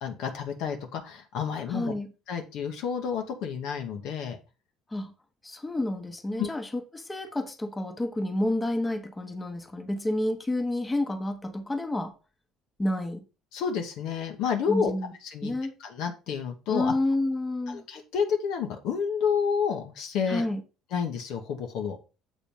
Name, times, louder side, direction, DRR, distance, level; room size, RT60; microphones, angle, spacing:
voice 1, 0.0-1.9 2.3-4.4 6.4-6.5 13.5-14.9 15.2-15.5 15.8-16.9 17.7-20.4 20.9-22.0, left 6 dB, 60° left, 1.1 m, -30 dB
voice 2, 1.7-2.1 4.9-5.1 5.4-12.1 12.8-13.2 14.7-15.1 15.4-15.7 16.7-17.8 20.3-20.6, left 1 dB, 15° left, 1.2 m, -29 dB
7.4 x 4.1 x 5.4 m
figure-of-eight pair, 55°, 0 cm